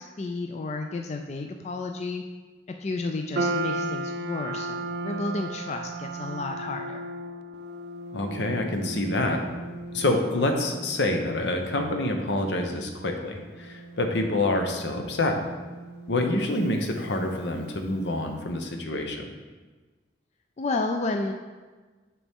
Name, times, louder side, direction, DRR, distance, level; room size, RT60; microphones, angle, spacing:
voice 1, 0.0-2.2 2.8-7.1 20.6-21.3, left 3 dB, 40° left, 4 dB, 0.4 m, -31 dB
sound 1, 3.3-17.8, right 2 dB, 65° right, 0.4 m, -36 dB
voice 2, 8.1-9.4 9.9-15.4 16.1-19.3, left 2 dB, 75° left, 4 dB, 0.9 m, -27 dB
6.9 x 6.1 x 3.6 m, 1.3 s
head